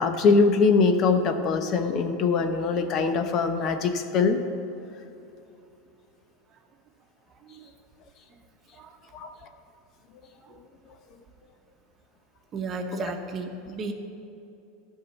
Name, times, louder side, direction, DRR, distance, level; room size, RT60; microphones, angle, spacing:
voice 1, 0.0-4.4 9.1-9.3 12.9-13.1, left 4 dB, 45° left, 8 dB, 0.8 m, -22 dB
voice 2, 12.5-13.9, right 3 dB, 35° right, 5 dB, 1.0 m, -33 dB
11.5 x 5.6 x 7.1 m, 2.7 s
supercardioid pair, 110°, 0 cm